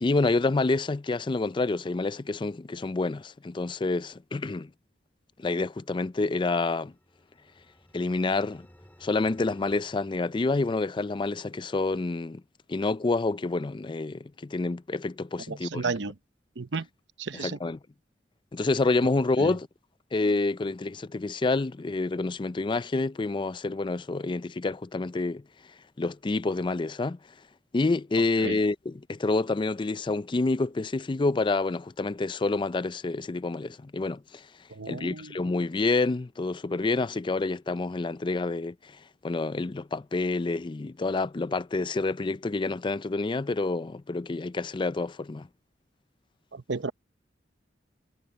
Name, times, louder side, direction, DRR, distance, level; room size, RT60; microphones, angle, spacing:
voice 1, 0.0-4.7 5.4-6.9 7.9-8.7 9.0-12.4 12.7-15.9 17.3-17.8 18.5-19.7 20.1-25.4 26.0-27.2 27.7-34.5 34.9-38.9 39.2-45.5, left 3 dB, 25° left, 0.4 m, -28 dB
sound 1, 6.6-11.1, equal, 10° left, 4.1 m, -58 dB
voice 2, 15.5-16.1 16.6-16.9 17.2-17.6 19.4-19.6 28.4-28.6 34.7-35.4 46.5-46.9, right 4 dB, 75° right, 0.9 m, -33 dB
head